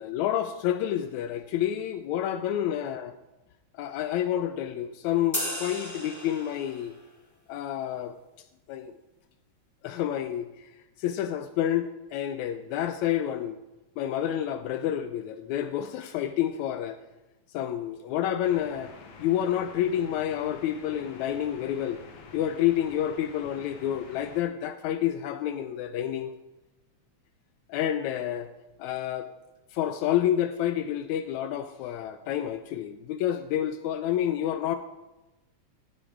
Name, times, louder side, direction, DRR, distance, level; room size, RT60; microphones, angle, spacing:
voice 1, 0.0-3.0 3.8-6.9 7.5-8.2 8.7-8.9 9.8-10.5 11.0-13.6 14.0-17.0 17.5-18.9 19.2-22.0 22.3-26.3 27.7-28.5 28.8-29.3 29.7-34.8, left 11 dB, 80° left, 9 dB, 1.9 m, -29 dB
sound 1, 5.3-6.9, left 1 dB, 20° left, 0.4 m, -34 dB
sound 2, 18.4-24.4, left 5 dB, 65° left, 2.2 m, -48 dB
15.0 x 8.6 x 3.6 m, 1.0 s
omnidirectional pair, 3.3 m